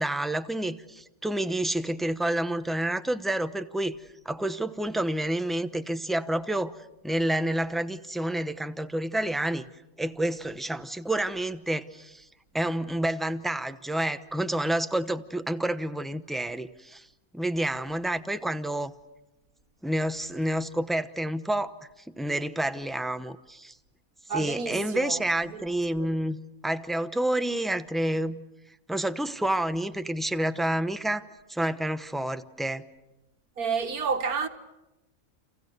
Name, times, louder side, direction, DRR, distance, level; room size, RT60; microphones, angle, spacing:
voice 1, 0.0-4.0 4.2-6.8 7.0-9.6 10.0-12.3 12.5-17.1 17.3-18.9 19.8-21.8 22.2-23.7 24.3-26.4 26.6-28.4 28.9-31.2 31.5-32.9, right 1 dB, ahead, 0.6 m, -29 dB
voice 2, 24.3-25.2 25.5-25.6 26.0-26.1 33.6-34.5, right 5 dB, 80° right, 2.0 m, -30 dB
30.0 x 28.5 x 6.7 m
omnidirectional pair, 1.5 m